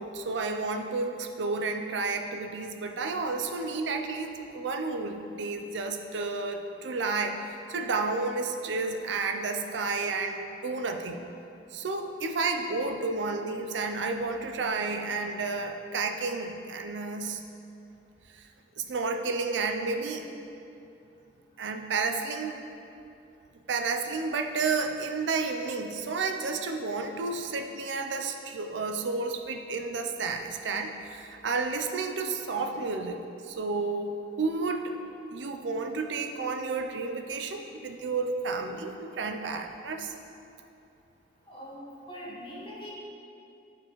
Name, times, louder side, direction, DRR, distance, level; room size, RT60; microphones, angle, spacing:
voice 1, 0.0-7.4 7.7-11.2 11.7-17.4 18.4-18.5 18.8-20.3 21.6-22.6 23.7-34.9 35.3-40.1, right 4 dB, 85° right, 5 dB, 0.5 m, -31 dB
voice 2, 41.5-42.9, equal, 30° left, -6 dB, 1.3 m, -42 dB
9.9 x 4.3 x 3.1 m, 2.7 s
head